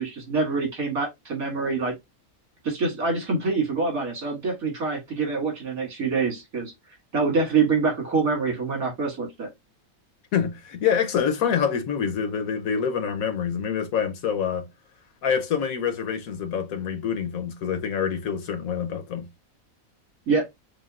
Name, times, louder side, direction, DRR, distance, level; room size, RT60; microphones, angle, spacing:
voice 1, 0.0-1.9 2.6-6.7 7.1-9.5 20.3-20.4, right 4 dB, 75° right, 2.6 m, -25 dB
voice 2, 10.3-14.7 15.2-19.3, left 7 dB, 75° left, 1.3 m, -26 dB
6.5 x 2.3 x 2.4 m
omnidirectional pair, 1.5 m